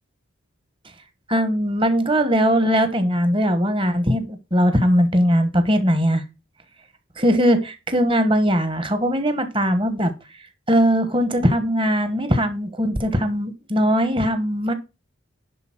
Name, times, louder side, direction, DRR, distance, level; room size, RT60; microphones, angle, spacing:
voice 1, 1.3-6.2 7.2-10.1 10.7-14.7, equal, 25° right, 9 dB, 1.2 m, -20 dB
10.5 x 4.1 x 5.9 m, 0.29 s
head